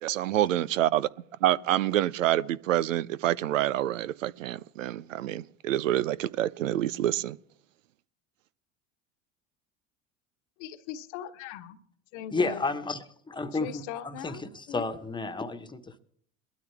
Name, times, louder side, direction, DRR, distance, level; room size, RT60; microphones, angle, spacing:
voice 1, 0.0-1.1 1.4-7.4, right 13 dB, 85° right, 0.5 m, -27 dB
voice 2, 10.6-11.8 12.1-12.6 13.5-14.4 14.7-14.8, left 10 dB, 65° left, 1.3 m, -39 dB
voice 3, 12.3-16.0, left 3 dB, 10° left, 1.2 m, -32 dB
22.0 x 12.5 x 3.5 m
hypercardioid pair, 75°, 37 cm